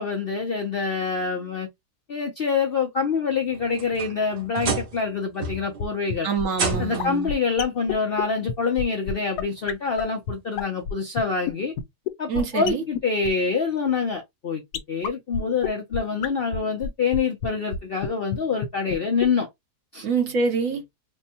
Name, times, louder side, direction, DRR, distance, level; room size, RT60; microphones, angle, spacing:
voice 1, 0.0-1.7 2.1-6.3 6.8-11.7 12.2-14.6 14.9-19.5 19.9-20.0, left 5 dB, 55° left, 0.6 m, -26 dB
sound 1, 3.5-5.1 5.4-5.9 6.5-7.2 8.4-8.5 9.1-9.2 10.8-10.9, right 3 dB, 85° right, 1.9 m, -30 dB
sound 2, 5.5-5.6 5.8-5.9 6.1-6.2 6.4-6.7 7.0-7.1 7.3-7.4 7.6-7.7 7.9-8.0 8.2-8.3 8.5-8.6 8.8-8.9 9.1-9.2 9.4-9.5 9.7-9.8 10.0-10.1 10.3-10.4 10.6-10.9 11.2-11.3 11.5-11.6 11.8-11.9 12.1-12.2 12.3-12.4 12.7-12.8 12.9-13.0 13.2-13.3 14.7-14.8 15.0-15.1 15.3-15.4 15.6-15.7 15.9-16.0 16.2-16.3 16.5-16.6 16.8-17.2 17.4-17.5 17.7-17.8 18.0-18.1 18.3-18.4 18.6-18.7 18.9-19.0 19.2-19.3, left 10 dB, 80° left, 1.2 m, -27 dB
voice 2, 6.2-7.3 12.3-12.8 20.0-20.8, right 5 dB, 60° right, 1.2 m, -25 dB
4.3 x 2.1 x 2.8 m
omnidirectional pair, 1.7 m